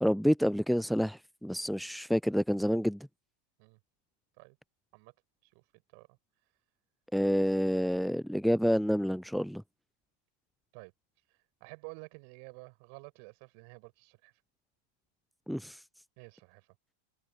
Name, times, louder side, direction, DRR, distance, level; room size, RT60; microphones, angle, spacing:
voice 1, 0.0-3.1 7.1-9.6 15.5-15.8, equal, ahead, 0.3 m, -28 dB
voice 2, 11.6-14.3 16.2-16.7, right 40 dB or more, 45° right, 6.4 m, -50 dB
figure-of-eight pair, 90°, 0 cm